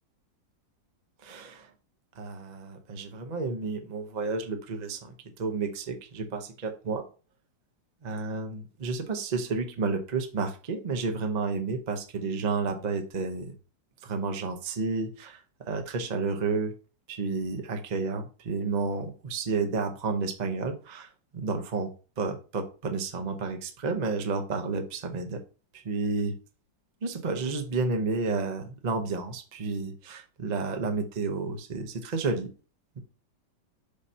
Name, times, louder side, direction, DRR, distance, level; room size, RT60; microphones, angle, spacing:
voice 1, 1.2-1.7 2.2-7.0 8.0-13.5 14.0-16.7 17.1-21.9 22.2-25.4 25.7-26.3 27.0-32.5, right 4 dB, 45° right, 6 dB, 0.5 m, -31 dB
6.8 x 2.8 x 5.4 m, 0.35 s
omnidirectional pair, 2.0 m